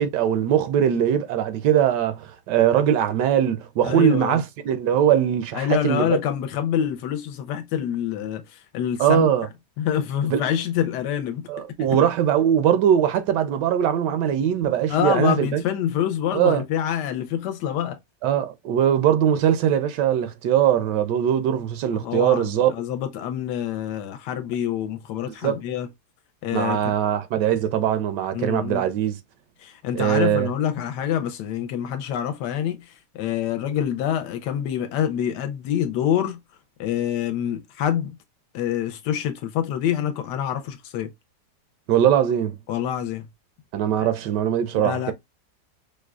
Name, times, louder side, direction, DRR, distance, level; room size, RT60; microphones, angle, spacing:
voice 1, 0.0-6.2 9.0-9.5 10.3-10.4 11.5-15.6 16.3-16.6 18.2-22.7 25.3-25.6 26.5-29.2 29.9-30.5 41.9-42.6 43.7-45.1, right 9 dB, 90° right, 1.2 m, -21 dB
voice 2, 3.8-4.4 5.5-9.3 9.8-11.5 14.9-18.0 22.0-25.9 26.4-26.9 28.3-28.9 29.6-36.4 36.8-38.2 38.5-41.1 42.7-43.3 44.7-45.1, left 9 dB, 85° left, 1.2 m, -26 dB
5.0 x 2.1 x 2.3 m
omnidirectional pair, 1.8 m